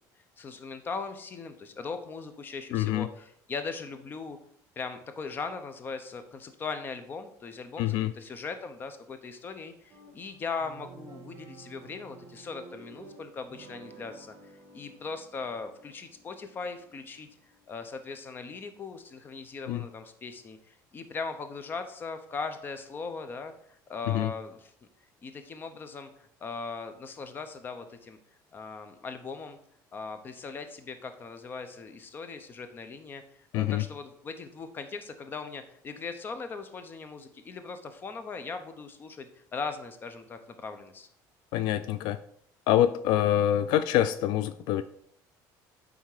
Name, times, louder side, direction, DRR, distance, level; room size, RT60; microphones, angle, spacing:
voice 1, 0.4-4.4 4.8-17.3 17.7-24.7 25.2-28.2 28.5-29.6 29.9-33.2 33.5-41.1, left 4 dB, 25° left, 9 dB, 0.7 m, -39 dB
voice 2, 2.7-3.1 7.8-8.1 19.7-19.8 24.1-24.3 33.5-33.9 41.5-42.2 42.7-44.8, left 12 dB, 70° left, 14 dB, 0.3 m, -25 dB
sound 1, 9.9-18.4, right 3 dB, 50° right, 1.6 m, -52 dB
9.2 x 3.6 x 4.9 m, 0.68 s
cardioid pair, 160°, 8 cm